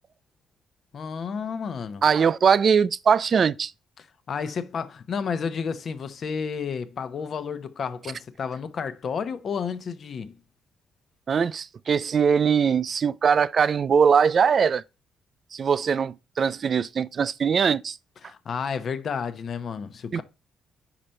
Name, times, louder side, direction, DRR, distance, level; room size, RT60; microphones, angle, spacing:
voice 1, 0.9-2.0 4.0-10.3 18.2-20.2, left 6 dB, 55° left, 0.8 m, -31 dB
voice 2, 2.0-3.7 11.3-14.8 15.5-18.0 20.1-20.2, right 6 dB, 50° right, 0.3 m, -21 dB
5.0 x 4.4 x 5.2 m
cardioid pair, 90°, 0 cm